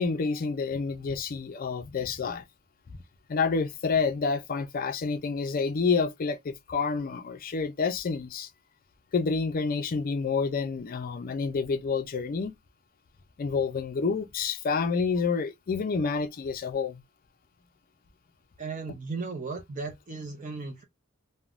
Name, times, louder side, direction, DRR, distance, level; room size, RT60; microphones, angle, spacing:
voice 1, 0.0-2.4 2.9-3.0 3.3-8.5 9.1-12.5 13.4-17.0, left 5 dB, 45° left, 0.4 m, -28 dB
voice 2, 18.6-20.8, right 4 dB, 40° right, 0.5 m, -36 dB
3.4 x 2.1 x 2.4 m
head